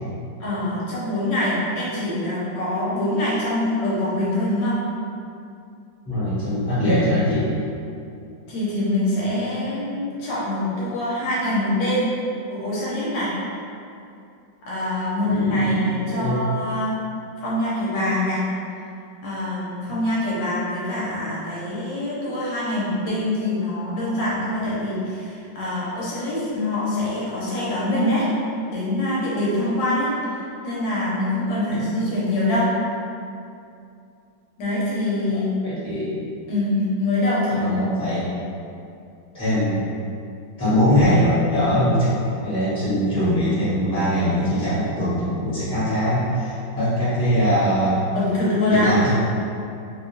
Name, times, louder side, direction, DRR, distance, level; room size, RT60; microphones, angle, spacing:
voice 1, 0.4-4.8 8.5-12.1 12.5-13.3 14.7-17.0 17.4-18.4 19.2-28.3 28.7-32.7 34.6-35.5 36.5-37.8 48.1-48.9, left 1 dB, 75° left, -8 dB, 1.3 m, -24 dB
voice 2, 6.1-7.5 15.3-16.4 35.6-36.2 37.5-38.3 39.3-39.9 40.6-42.1 42.4-48.0 48.7-49.1, equal, 5° left, -13 dB, 0.8 m, -21 dB
2.9 x 2.8 x 2.6 m, 2.6 s
omnidirectional pair, 2.1 m